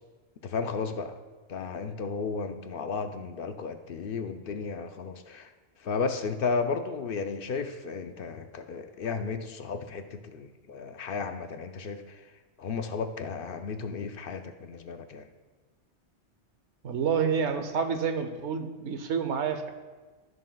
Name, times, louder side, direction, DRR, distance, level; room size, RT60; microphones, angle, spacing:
voice 1, 0.4-1.1 1.5-5.5 5.8-12.2 12.6-15.3, left 5 dB, 60° left, 7 dB, 0.7 m, -34 dB
voice 2, 16.8-19.7, right 6 dB, 90° right, 8 dB, 1.0 m, -28 dB
14.5 x 6.4 x 2.2 m, 1.3 s
omnidirectional pair, 1.1 m